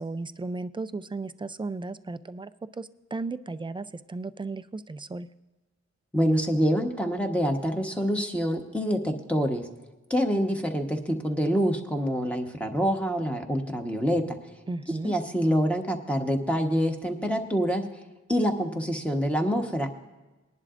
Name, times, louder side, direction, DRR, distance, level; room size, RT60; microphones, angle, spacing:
voice 1, 0.0-2.5 2.8-5.3 14.7-15.1, right 3 dB, 15° right, 13 dB, 0.4 m, -35 dB
voice 2, 6.1-9.6 10.1-14.4 15.0-17.8 18.3-20.0, equal, 5° left, 3 dB, 1.2 m, -26 dB
20.0 x 10.5 x 2.5 m, 1.1 s
wide cardioid pair, 105°, 29 cm